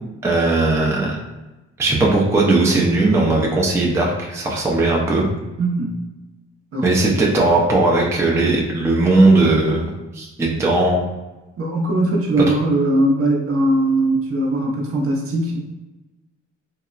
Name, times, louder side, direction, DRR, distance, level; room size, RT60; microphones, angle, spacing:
voice 1, 0.2-1.2 1.8-5.3 6.8-11.0, right 2 dB, 10° right, -2 dB, 0.4 m, -17 dB
voice 2, 5.6-5.9 6.7-6.8 11.6-15.6, right 1 dB, 50° right, 0 dB, 0.6 m, -20 dB
2.8 x 2.0 x 2.4 m, 1.1 s
cardioid pair, 90°, 30 cm